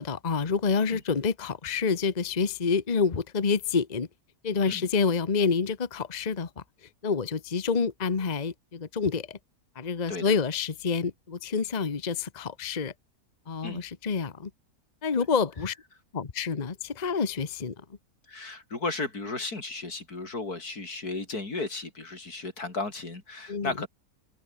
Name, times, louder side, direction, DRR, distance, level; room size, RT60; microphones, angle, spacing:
voice 1, 0.0-4.1 4.4-6.6 7.0-9.4 9.8-12.9 13.5-14.5 15.0-15.7 16.1-17.7 23.5-23.7, left 5 dB, 30° left, 1.1 m, -28 dB
voice 2, 18.3-23.9, left 3 dB, 85° left, 4.9 m, -34 dB
omnidirectional pair, 1.6 m